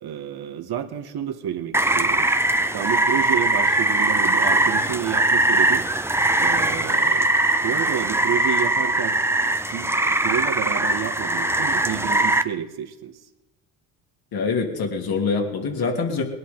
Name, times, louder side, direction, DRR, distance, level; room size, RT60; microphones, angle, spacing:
voice 1, 0.0-2.3 2.7-5.9 6.4-7.3 7.6-9.2 9.7-13.1, right 9 dB, 55° right, 7 dB, 1.6 m, -30 dB
Rain, 1.7-12.4, right 2 dB, 5° right, 0.8 m, -21 dB
voice 2, 14.3-16.2, left 4 dB, 50° left, 2 dB, 3.1 m, -24 dB
21.0 x 11.0 x 4.0 m, 1.0 s
hypercardioid pair, 60°, 45 cm